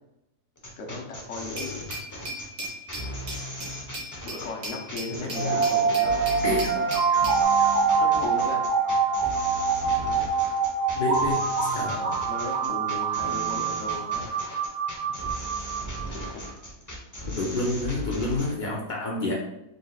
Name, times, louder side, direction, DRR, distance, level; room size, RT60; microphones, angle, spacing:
sound 1, 0.6-18.5, equal, 20° left, 0.6 m, -37 dB
voice 1, 0.8-2.0 4.2-7.0 8.0-8.6 11.9-14.4 16.1-16.5, left 3 dB, 60° left, 1 dB, 1.0 m, -36 dB
Glass, 1.6-7.4, equal, 60° right, 1.8 m, -37 dB
voice 2, 5.2-5.7 6.4-6.7 10.9-11.9 17.3-19.3, left 2 dB, 80° left, -2 dB, 0.4 m, -29 dB
sound 2, 5.3-16.3, right 5 dB, 80° right, 1.5 m, -25 dB
4.2 x 3.8 x 2.3 m, 0.89 s
omnidirectional pair, 1.7 m